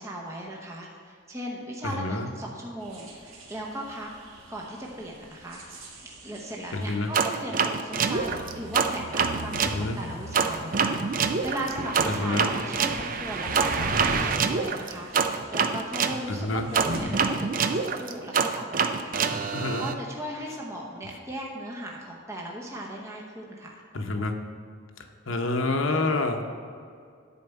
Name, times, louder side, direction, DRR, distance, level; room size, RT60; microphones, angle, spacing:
voice 1, 0.0-4.1 4.5-19.2 19.8-23.8, right 1 dB, 15° right, -2 dB, 0.9 m, -37 dB
voice 2, 1.8-2.3 6.7-7.1 9.6-10.0 12.1-12.5 16.3-16.7 19.5-19.9 23.9-24.3 25.3-26.4, left 2 dB, 70° left, 5 dB, 0.8 m, -28 dB
sound 1, 2.8-17.9, equal, 70° right, 1.7 m, -41 dB
sound 2, 7.1-9.8 10.3-16.2 16.7-19.9, right 5 dB, 40° right, 0.4 m, -26 dB
10.5 x 4.5 x 7.0 m, 2.3 s
head